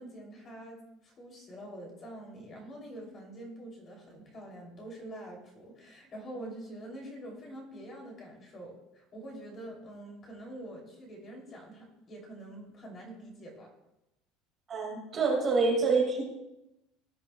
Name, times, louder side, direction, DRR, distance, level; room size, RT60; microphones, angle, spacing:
voice 1, 0.0-13.7, right 1 dB, 25° left, 0 dB, 2.9 m, -45 dB
voice 2, 14.7-16.2, right 4 dB, 25° right, 0 dB, 2.0 m, -26 dB
18.0 x 10.0 x 2.3 m, 0.89 s
cardioid pair, 170°, 0 cm